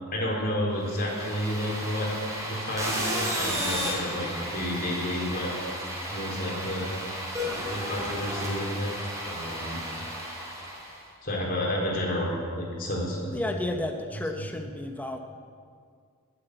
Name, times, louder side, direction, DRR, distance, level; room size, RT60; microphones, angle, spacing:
voice 1, 0.1-2.1 2.4-5.5 6.1-6.9 7.7-8.9 9.2-9.8 11.2-13.3, left 1 dB, 45° left, -2 dB, 4.1 m, -30 dB
sound 1, 0.8-11.0, equal, 15° right, 3.6 m, -33 dB
voice 2, 13.3-15.2, left 1 dB, 5° left, 4 dB, 1.0 m, -32 dB
19.5 x 8.4 x 8.0 m, 2.1 s
head